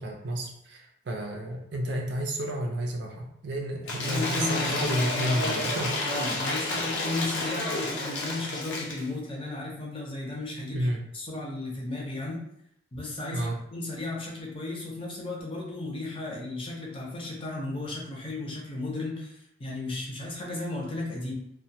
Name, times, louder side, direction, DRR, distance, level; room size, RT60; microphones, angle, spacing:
voice 1, 0.0-6.1 10.7-11.0 13.3-13.6, right 1 dB, 70° right, 1 dB, 0.5 m, -31 dB
Cheering / Applause / Crowd, 3.8-9.1, left 2 dB, 75° left, 0.5 m, -30 dB
voice 2, 4.0-5.6 6.0-12.4 12.9-21.3, left 2 dB, 30° left, -3 dB, 0.6 m, -34 dB
2.2 x 2.1 x 2.7 m, 0.76 s
head